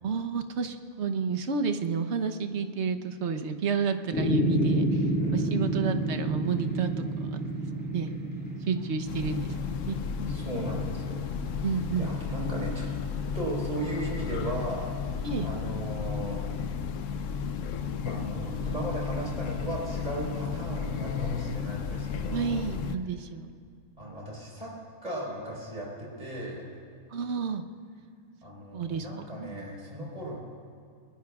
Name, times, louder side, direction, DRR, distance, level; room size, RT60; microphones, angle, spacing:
voice 1, 0.0-5.0 5.3-7.0 7.8-10.0 11.6-12.1 15.2-15.5 22.3-23.5 27.1-27.6 28.7-29.1 29.4-29.6, right 5 dB, 50° right, 8 dB, 1.1 m, -31 dB
sound 1, 4.1-10.6, right 1 dB, 5° left, 4.8 m, -30 dB
voice 2, 5.2-5.6 10.3-11.3 11.5-11.7 12.0-12.9 13.3-14.9 15.2-16.4 18.0-22.6 24.0-24.7 25.0-26.6 28.4-30.4, right 1 dB, 25° right, -3 dB, 4.3 m, -36 dB
Train, 9.1-23.0, left 6 dB, 60° left, 0.9 m, -33 dB
29.0 x 20.5 x 2.4 m, 2.3 s
omnidirectional pair, 1.7 m